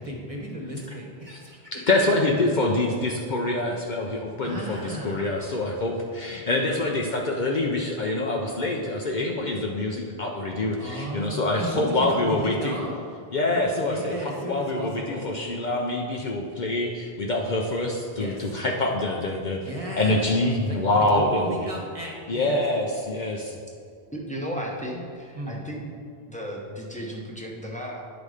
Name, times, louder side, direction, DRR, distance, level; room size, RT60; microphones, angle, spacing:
voice 1, 0.0-2.1 4.4-5.4 10.8-12.9 13.4-15.3 18.2-18.5 19.6-20.2 20.7-22.6 25.3-25.6, equal, 35° right, -1 dB, 1.1 m, -34 dB
voice 2, 1.7-12.7 13.3-19.6 19.9-21.5 22.3-23.6, left 2 dB, 50° left, 0 dB, 0.7 m, -25 dB
voice 3, 24.1-26.0 26.3-28.1, equal, 10° left, -3 dB, 0.8 m, -34 dB
9.9 x 4.0 x 4.9 m, 2.2 s
omnidirectional pair, 1.1 m